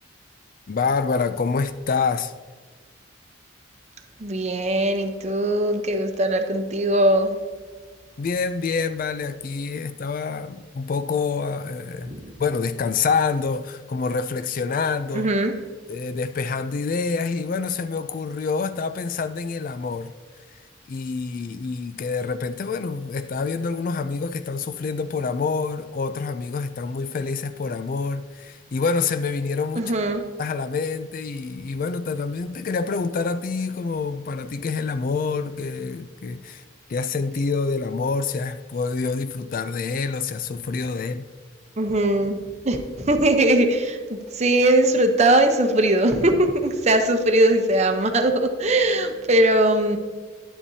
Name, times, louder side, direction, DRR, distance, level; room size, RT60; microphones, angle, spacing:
voice 1, 0.7-2.3 8.2-12.1 12.4-15.3 15.9-20.1 20.9-29.9 30.4-36.6 36.9-41.3, left 4 dB, 45° left, 0.3 m, -27 dB
voice 2, 4.2-7.4 12.1-12.2 15.1-15.5 29.8-30.2 41.8-50.0, right 1 dB, 35° right, 0.8 m, -20 dB
10.5 x 10.0 x 2.7 m
head